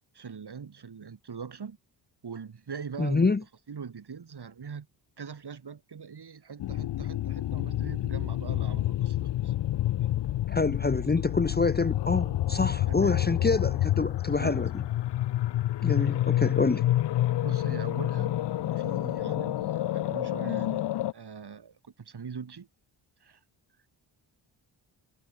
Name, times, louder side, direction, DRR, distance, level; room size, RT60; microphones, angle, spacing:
voice 1, 0.1-1.8 2.2-3.3 3.7-4.9 5.2-9.2 9.4-9.5 12.9-13.2 14.3-14.6 17.4-22.7 23.2-23.4, right 6 dB, 50° right, 4.1 m, -42 dB
voice 2, 3.0-3.4 10.5-14.8 15.8-16.9, left 4 dB, 20° left, 0.9 m, -26 dB
sound 1, 6.6-21.1, left 13 dB, 55° left, 0.7 m, -28 dB
supercardioid pair, 50°, 50 cm